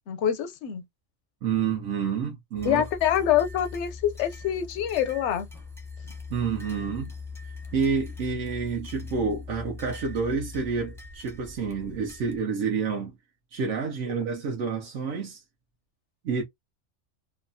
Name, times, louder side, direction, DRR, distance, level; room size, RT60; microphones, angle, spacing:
voice 1, 0.1-0.8 2.7-5.5, left 10 dB, 75° left, 0.9 m, -25 dB
voice 2, 1.4-2.8 6.3-7.1 7.7-13.1 13.5-15.4 16.2-16.4, right 5 dB, 85° right, 1.1 m, -29 dB
sound 1, 2.6-12.4, left 4 dB, 5° left, 0.4 m, -41 dB
2.8 x 2.2 x 2.5 m
omnidirectional pair, 1.2 m